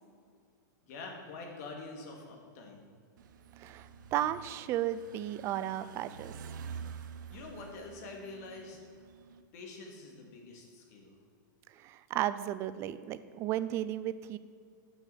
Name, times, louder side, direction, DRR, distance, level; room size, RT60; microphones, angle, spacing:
voice 1, 0.8-2.9 7.3-8.8 9.5-11.2, left 3 dB, 50° left, 1 dB, 2.2 m, -46 dB
sound 1, 3.2-9.4, right 6 dB, 70° right, 0.7 m, -48 dB
voice 2, 3.6-6.3 11.8-14.4, right 12 dB, 25° right, 14 dB, 0.3 m, -34 dB
7.7 x 6.2 x 7.6 m, 2.1 s
supercardioid pair, 155°, 11 cm